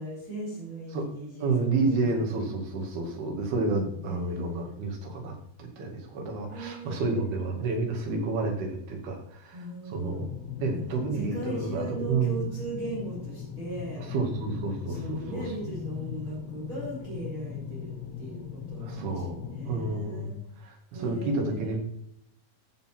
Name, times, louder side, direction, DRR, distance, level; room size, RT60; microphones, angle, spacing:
voice 1, 0.0-2.2 4.0-4.7 6.5-7.6 9.5-10.3 10.7-10.8 11.2-14.0 14.9-20.4 20.9-21.8, right 1 dB, 20° right, -5 dB, 3.8 m, -38 dB
voice 2, 1.4-10.3 10.6-12.5 14.1-15.4 18.8-21.8, right 3 dB, 80° right, 2 dB, 4.2 m, -30 dB
sound 1, 10.1-20.0, left 7 dB, 55° left, 2.0 m, -39 dB
14.0 x 6.7 x 4.6 m, 0.71 s
omnidirectional pair, 4.4 m